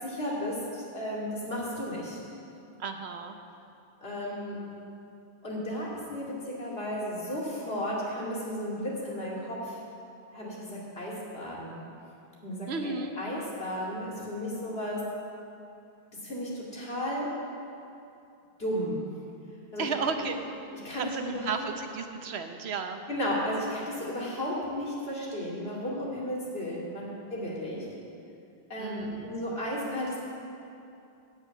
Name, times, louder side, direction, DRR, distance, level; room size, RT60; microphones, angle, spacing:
voice 1, 0.0-2.2 4.0-4.6 5.4-9.8 10.3-11.8 12.4-15.0 16.2-17.3 18.6-19.0 19.7-20.2 20.8-21.5 23.1-27.8 28.7-30.2, equal, 70° left, -5 dB, 2.8 m, -34 dB
voice 2, 2.8-3.4 12.7-13.2 19.8-20.4 20.9-23.0 28.8-29.3, right 5 dB, 80° right, 6 dB, 1.1 m, -33 dB
8.3 x 8.3 x 8.2 m, 2.6 s
omnidirectional pair, 1.1 m